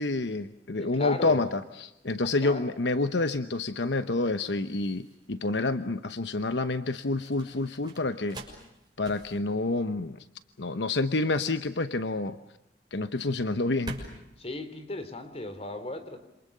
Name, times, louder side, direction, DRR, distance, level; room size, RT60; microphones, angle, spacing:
voice 1, 0.0-8.4 9.0-10.2 10.6-12.4 12.9-14.0, left 2 dB, 75° left, 10 dB, 1.0 m, -28 dB
voice 2, 0.8-1.5 2.2-2.6 14.4-16.3, left 2 dB, 35° left, 10 dB, 3.3 m, -36 dB
sound 1, 4.5-15.7, right 1 dB, 25° right, 6.4 m, -47 dB
28.0 x 27.0 x 6.7 m, 0.88 s
head